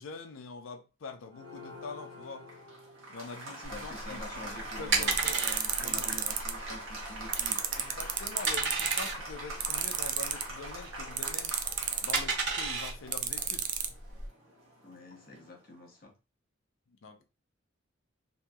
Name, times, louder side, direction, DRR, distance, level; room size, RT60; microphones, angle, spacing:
voice 1, 0.0-2.5 3.1-4.2 4.8-5.4 5.8-6.2 6.7-6.8 7.8-11.5 12.0-13.7 16.9-17.2, left 4 dB, 90° left, 0.5 m, -44 dB
Applause, 1.3-15.7, right 1 dB, 85° right, 1.0 m, -44 dB
voice 2, 3.5-7.6 14.8-16.1, left 2 dB, 45° left, 0.8 m, -47 dB
sound 1, 3.6-14.3, right 3 dB, 60° right, 1.2 m, -34 dB
sound 2, 5.0-6.5 7.3-9.0 9.6-10.4 11.2-12.3 13.1-13.9, right 9 dB, 40° right, 0.3 m, -30 dB
2.9 x 2.7 x 2.3 m
head